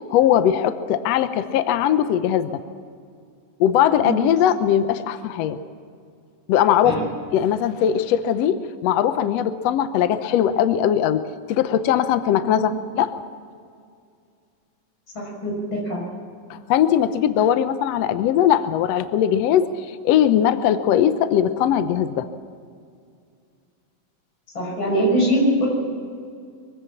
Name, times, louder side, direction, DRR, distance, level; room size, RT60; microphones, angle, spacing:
voice 1, 0.1-2.6 3.6-5.6 6.5-7.0 7.3-13.1 16.5-22.3, left 10 dB, 85° left, 11 dB, 1.4 m, -20 dB
voice 2, 15.1-16.0 24.5-25.7, right 1 dB, 35° left, -1 dB, 6.7 m, -22 dB
23.0 x 15.5 x 7.3 m, 2.3 s
omnidirectional pair, 4.0 m